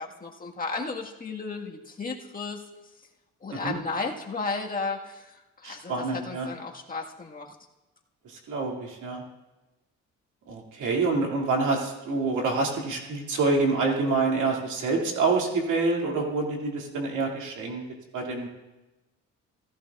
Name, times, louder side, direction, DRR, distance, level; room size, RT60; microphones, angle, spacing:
voice 1, 0.0-2.6 3.4-7.5, left 4 dB, 30° left, 0 dB, 1.6 m, -34 dB
voice 2, 5.6-6.5 8.5-9.2 10.5-17.8 18.1-18.5, right 3 dB, 80° right, 0 dB, 2.4 m, -27 dB
16.5 x 14.5 x 2.4 m, 1.1 s
cardioid pair, 90°, 30 cm